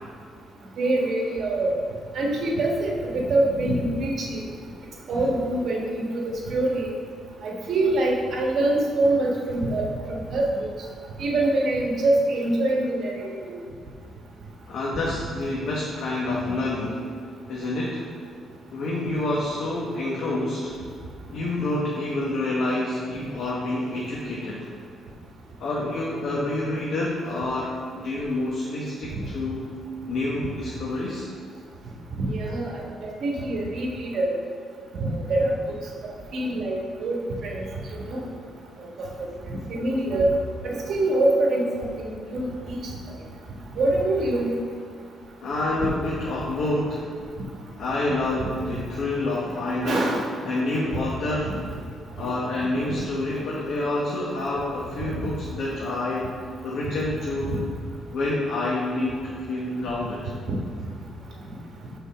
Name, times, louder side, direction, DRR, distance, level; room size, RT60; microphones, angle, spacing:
voice 1, 0.8-1.7 2.1-4.4 5.1-6.9 7.4-10.7 11.2-13.5 32.2-32.8 33.2-34.3 34.9-35.6 36.3-37.6 38.1-38.2 39.0-39.3 39.7-40.3 40.6-42.8 43.8-44.5 48.4-48.5 49.8-50.3 51.4-51.5 52.2-52.3 57.4-57.6, right 2 dB, 65° right, -1 dB, 1.3 m, -24 dB
voice 2, 14.7-17.0 17.5-18.1 18.7-20.7 21.3-24.7 25.6-29.7 30.1-31.3 45.4-47.1 47.8-50.1 50.4-51.6 52.1-56.3 56.6-57.6 58.1-60.2, left 2 dB, 70° left, -4 dB, 1.0 m, -28 dB
5.5 x 4.0 x 6.0 m, 2.1 s
cardioid pair, 90°, 0 cm